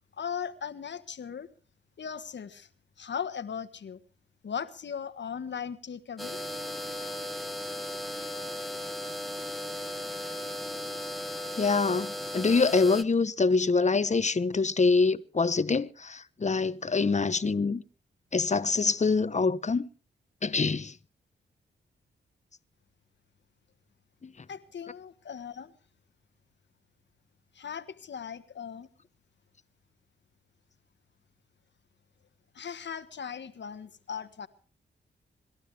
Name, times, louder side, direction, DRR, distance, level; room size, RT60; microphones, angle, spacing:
voice 1, 0.1-1.5 2.0-2.7 3.0-4.0 4.4-6.4 24.5-25.7 27.5-28.9 32.5-34.5, left 7 dB, 60° left, 1.5 m, -38 dB
sound 1, 6.2-13.0, left 1 dB, ahead, 1.4 m, -36 dB
voice 2, 11.6-17.8 18.3-19.9 20.4-20.9 24.2-24.3, left 4 dB, 35° left, 1.1 m, -25 dB
27.0 x 12.5 x 3.4 m
supercardioid pair, 50°, 20 cm